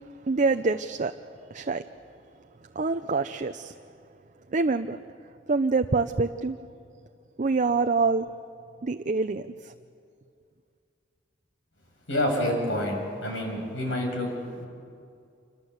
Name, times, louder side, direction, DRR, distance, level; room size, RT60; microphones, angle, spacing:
voice 1, 0.3-1.1 1.5-1.8 2.7-3.7 4.5-5.0 5.5-6.6 7.4-8.3 8.8-9.7, right 3 dB, 40° right, 7 dB, 0.6 m, -25 dB
voice 2, 12.1-14.7, left 1 dB, 80° left, 2 dB, 6.5 m, -28 dB
27.0 x 25.5 x 8.0 m, 2.4 s
head